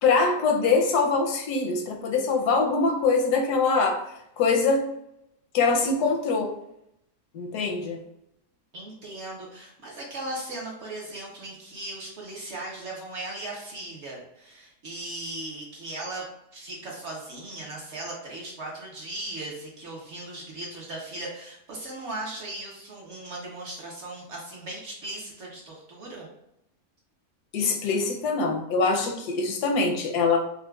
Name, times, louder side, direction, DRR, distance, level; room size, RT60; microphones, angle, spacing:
voice 1, 0.0-4.0 4.4-4.8 5.5-6.5 7.3-8.0 27.5-30.4, left 4 dB, 85° left, 3 dB, 1.2 m, -23 dB
voice 2, 8.7-16.3 16.5-26.3, right 2 dB, 55° right, -2 dB, 0.9 m, -38 dB
4.5 x 2.3 x 2.3 m, 0.79 s
omnidirectional pair, 1.7 m